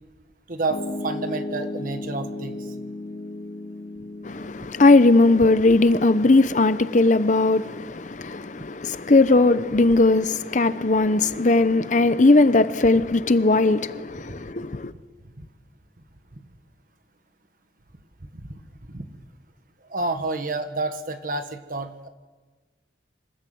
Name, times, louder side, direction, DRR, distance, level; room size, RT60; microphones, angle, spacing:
voice 1, 0.5-2.6 15.4-15.5 18.4-18.5 18.9-19.1 19.9-22.1, right 3 dB, 50° right, 1.5 m, -29 dB
Piano, 0.7-12.9, left 2 dB, 85° left, 3.1 m, -38 dB
voice 2, 4.2-14.9, left 2 dB, 40° left, 0.7 m, -18 dB
26.0 x 14.5 x 7.8 m
head